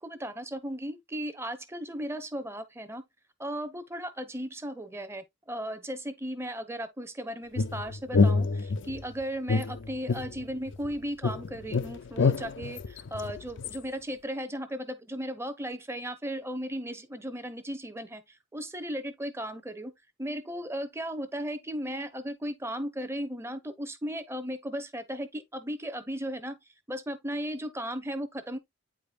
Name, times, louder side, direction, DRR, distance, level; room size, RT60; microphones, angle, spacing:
voice 1, 0.0-3.0 3.4-19.9 20.2-26.6 26.9-28.6, equal, 10° right, 0.8 m, -36 dB
sound 1, 7.6-9.0 9.5-10.9 11.2-13.8, left 4 dB, 55° left, 0.5 m, -27 dB
8.9 x 5.0 x 2.4 m
head